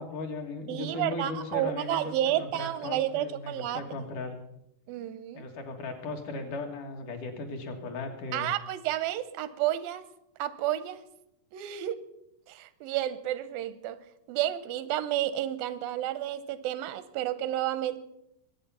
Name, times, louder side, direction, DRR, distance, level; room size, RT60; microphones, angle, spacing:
voice 1, 0.0-4.4 5.3-8.5, left 3 dB, 65° left, 3 dB, 3.2 m, -37 dB
voice 2, 0.7-3.8 4.9-5.5 8.3-10.1 10.4-11.0 11.5-12.0 12.5-14.0 14.3-18.0, right 12 dB, 90° right, 15 dB, 2.5 m, -31 dB
22.0 x 8.5 x 5.6 m, 0.80 s
omnidirectional pair, 4.0 m